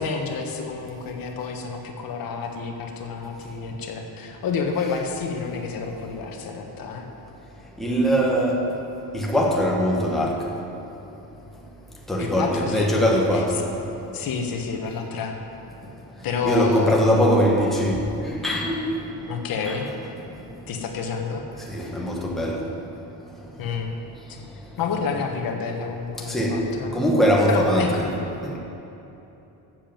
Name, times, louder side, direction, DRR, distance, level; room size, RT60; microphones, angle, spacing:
voice 1, 0.0-7.1 12.2-12.9 14.1-15.4 16.2-17.0 19.3-19.9 20.7-21.4 23.6-23.9 24.8-27.0 27.5-27.9, left 5 dB, 55° left, 3 dB, 1.3 m, -29 dB
voice 2, 7.8-8.7 9.1-10.5 12.1-13.6 16.4-18.9 19.7-19.8 21.7-22.6 26.3-26.7 26.9-28.1 28.4-28.6, equal, ahead, -3 dB, 1.3 m, -21 dB
12.5 x 7.6 x 7.6 m, 3.0 s
cardioid pair, 175°, 41 cm